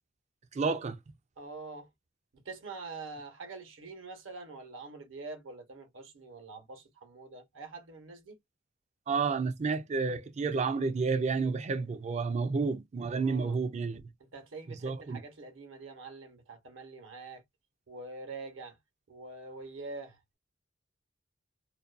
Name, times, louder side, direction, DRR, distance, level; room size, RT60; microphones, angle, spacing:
voice 1, 0.5-1.0 9.1-14.0 14.8-15.2, right 4 dB, 35° right, 0.4 m, -30 dB
voice 2, 1.4-1.9 2.3-8.4 13.1-13.6 14.2-17.4 17.9-18.8 19.1-20.4, right 3 dB, 75° right, 0.9 m, -45 dB
2.4 x 2.2 x 2.4 m
head